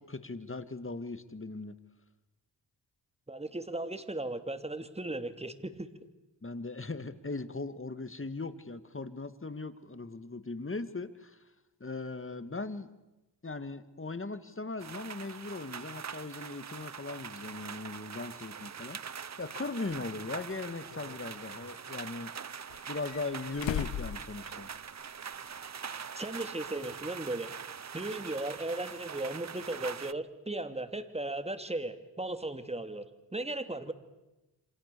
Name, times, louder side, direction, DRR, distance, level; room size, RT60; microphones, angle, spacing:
voice 1, 0.0-1.7 6.4-11.4 11.8-12.9 13.4-22.3 22.9-24.7, left 3 dB, 30° left, 11 dB, 2.2 m, -39 dB
voice 2, 3.3-5.9 26.0-27.5 27.9-33.1 33.3-33.9, right 2 dB, 15° right, 10 dB, 2.6 m, -36 dB
sound 1, 14.8-30.1, right 7 dB, 40° right, 0.8 m, -43 dB
sound 2, 19.9-20.0 20.9-21.8 22.7-25.0 25.3-25.4 27.0-27.1, left 10 dB, 85° left, 0.9 m, -39 dB
28.5 x 26.0 x 7.0 m, 1.0 s
cardioid pair, 50°, 44 cm